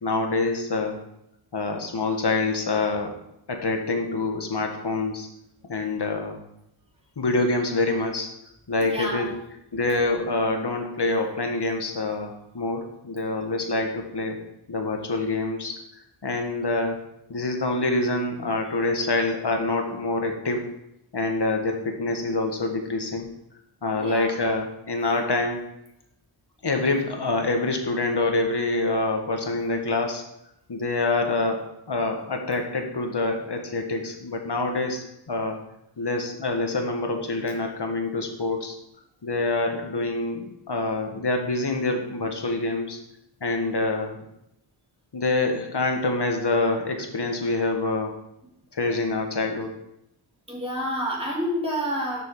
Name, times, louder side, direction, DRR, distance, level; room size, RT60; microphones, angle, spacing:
voice 1, 0.0-1.0 1.5-3.2 3.5-5.3 5.7-6.4 7.2-8.3 8.7-9.4 9.7-14.4 14.7-15.8 16.2-17.0 17.3-20.8 21.1-23.3 23.8-25.7 26.6-30.2 30.7-35.6 36.0-38.7 39.2-43.0 43.4-44.2 45.1-48.2 48.7-49.7, left 2 dB, 50° left, 3 dB, 1.5 m, -26 dB
voice 2, 8.8-9.4 9.9-10.0 24.0-24.3 50.5-52.2, equal, 10° right, -4 dB, 2.9 m, -29 dB
7.2 x 6.3 x 4.7 m, 0.81 s
wide cardioid pair, 55°, 50 cm